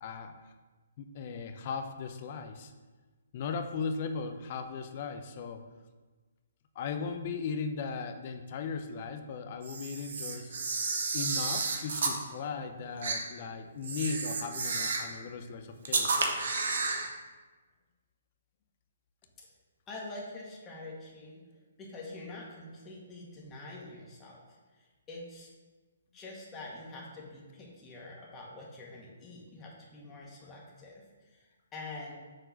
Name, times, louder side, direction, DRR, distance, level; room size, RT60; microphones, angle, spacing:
voice 1, 0.0-0.5 1.0-2.7 3.3-5.6 6.7-10.6 11.1-16.1, left 5 dB, 40° left, 7 dB, 0.7 m, -37 dB
Camera, 9.6-12.2 13.0-13.2 13.8-15.1 15.8-17.1, right 4 dB, 60° right, 1.1 m, -31 dB
voice 2, 19.9-21.4 21.8-24.4 25.1-25.5 26.1-31.5 31.7-32.1, left 2 dB, 20° left, -4 dB, 1.9 m, -45 dB
6.3 x 4.4 x 5.8 m, 1.3 s
figure-of-eight pair, 135°, 0 cm